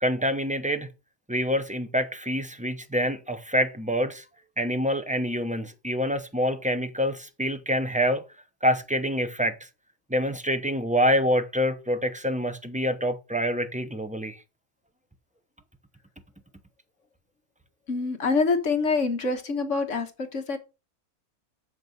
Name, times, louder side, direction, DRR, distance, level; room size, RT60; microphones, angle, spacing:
voice 1, 0.0-0.9 1.3-4.2 4.6-8.2 8.6-9.6 10.1-14.4, equal, 10° right, 0.5 m, -26 dB
voice 2, 17.9-20.6, left 4 dB, 55° left, 1.6 m, -26 dB
7.4 x 6.0 x 5.3 m
omnidirectional pair, 1.6 m